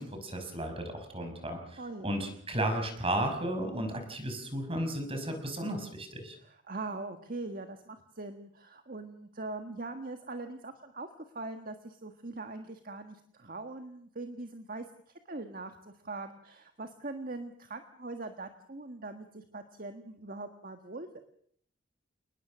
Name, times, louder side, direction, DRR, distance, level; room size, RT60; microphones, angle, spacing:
voice 1, 0.0-6.4, right 1 dB, 30° right, 6 dB, 5.6 m, -34 dB
voice 2, 1.8-2.1 6.4-15.0 15.3-21.1, right 2 dB, 45° right, 6 dB, 1.6 m, -42 dB
29.0 x 20.0 x 6.3 m, 0.63 s
head